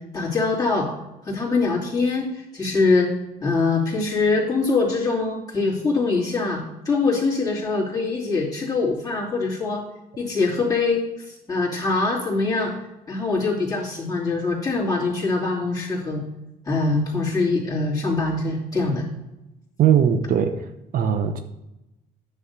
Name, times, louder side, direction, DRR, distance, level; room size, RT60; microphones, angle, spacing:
voice 1, 0.1-0.9 1.2-3.1 3.4-9.8 10.2-12.7 13.1-16.2 16.6-19.0, left 3 dB, 20° left, -5 dB, 2.8 m, -23 dB
voice 2, 19.8-20.7 20.9-21.4, right 8 dB, 55° right, 8 dB, 0.7 m, -19 dB
9.9 x 3.5 x 6.9 m, 0.92 s
cardioid pair, 110°, 17 cm